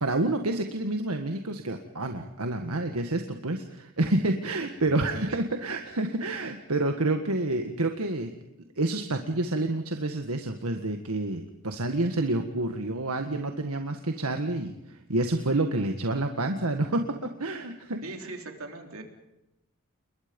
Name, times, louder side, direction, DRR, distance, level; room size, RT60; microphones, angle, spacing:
voice 1, 0.0-8.3 8.8-18.3, right 2 dB, 85° right, 5 dB, 1.7 m, -28 dB
voice 2, 18.0-19.0, right 2 dB, 70° right, 4 dB, 3.8 m, -39 dB
29.0 x 22.0 x 5.4 m, 0.93 s
head